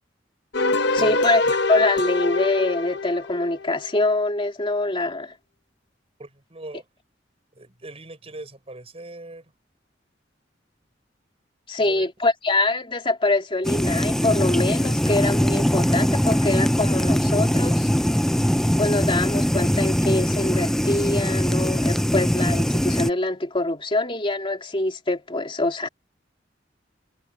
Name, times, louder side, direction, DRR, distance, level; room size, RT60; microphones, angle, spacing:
sound 1, 0.5-3.8, left 3 dB, 65° left, 1.0 m, -24 dB
voice 1, 0.9-1.4 1.7-5.3 11.7-17.9 18.8-25.9, left 2 dB, 30° left, 3.3 m, -24 dB
voice 2, 6.2-6.9 7.6-9.5 11.8-12.1, right 2 dB, 35° right, 5.5 m, -40 dB
sound 2, 13.6-23.1, equal, 5° left, 0.6 m, -21 dB
head